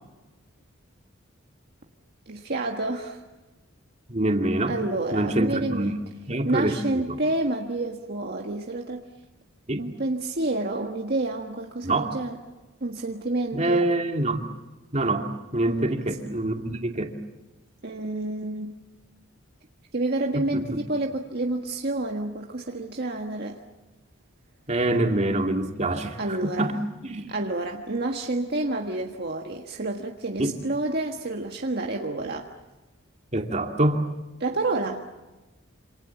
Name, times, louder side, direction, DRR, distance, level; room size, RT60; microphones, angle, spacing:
voice 1, 2.3-3.2 4.7-5.9 6.4-9.0 9.8-12.4 12.8-13.8 15.7-15.9 17.8-18.7 19.9-23.6 26.2-26.7 27.3-32.5 34.4-35.0, right 2 dB, 50° right, 2 dB, 1.6 m, -29 dB
voice 2, 4.1-4.8 5.1-6.0 6.3-7.2 9.7-9.8 11.8-12.1 13.5-14.4 14.9-17.1 20.3-20.6 24.7-26.7 27.0-27.3 30.4-30.6 33.3-34.0, right 1 dB, 35° right, 3 dB, 2.5 m, -25 dB
28.0 x 27.0 x 7.2 m, 1.1 s
head